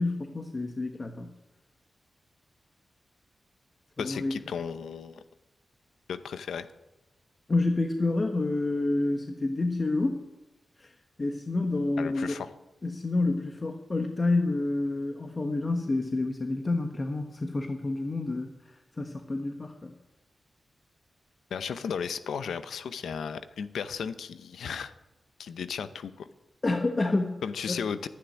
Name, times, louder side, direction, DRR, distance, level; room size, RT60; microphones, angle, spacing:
voice 1, 0.0-1.3 4.0-4.4 7.5-10.2 10.8-10.9 11.2-12.4 12.8-19.9 26.6-27.4 27.7-27.8, left 2 dB, 40° left, 5 dB, 1.3 m, -29 dB
voice 2, 4.0-5.2 6.1-6.7 12.0-12.5 21.5-24.9 25.4-26.3 27.4-28.1, left 6 dB, 90° left, 12 dB, 0.8 m, -35 dB
11.5 x 9.7 x 9.9 m, 1.0 s
cardioid pair, 50°, 0 cm